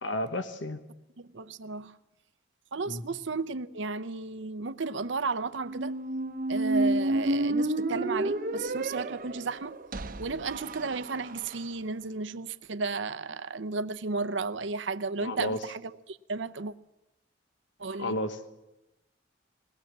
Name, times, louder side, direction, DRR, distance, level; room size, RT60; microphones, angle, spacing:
voice 1, 0.0-0.8 2.9-3.0 15.2-15.7 17.9-18.4, left 1 dB, 75° left, 1.3 m, -32 dB
voice 2, 1.3-1.9 2.7-5.9 6.5-9.7 10.2-15.8 16.1-16.7 17.8-18.1, right 4 dB, 75° right, 0.7 m, -33 dB
Squeak, 5.6-11.6, right 2 dB, 45° right, 0.8 m, -30 dB
21.5 x 18.5 x 7.4 m
head